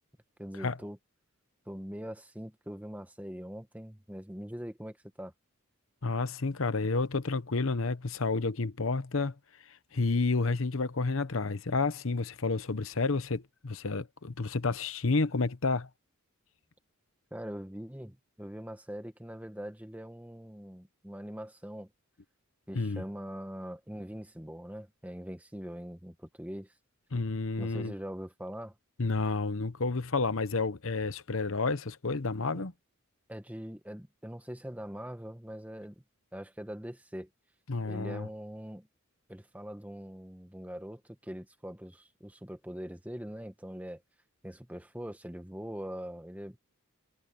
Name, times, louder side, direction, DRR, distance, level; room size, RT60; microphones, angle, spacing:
voice 1, 0.4-1.0 1.7-5.3 17.3-21.9 22.7-26.7 27.6-28.7 32.5-32.6 33.3-35.9 36.3-37.3 37.8-38.9 39.3-44.0 44.4-46.6, equal, 5° right, 1.4 m, -42 dB
voice 2, 6.0-9.3 9.9-15.9 22.7-23.0 27.1-27.9 29.0-32.7 37.7-38.3, left 3 dB, 65° left, 0.9 m, -30 dB
head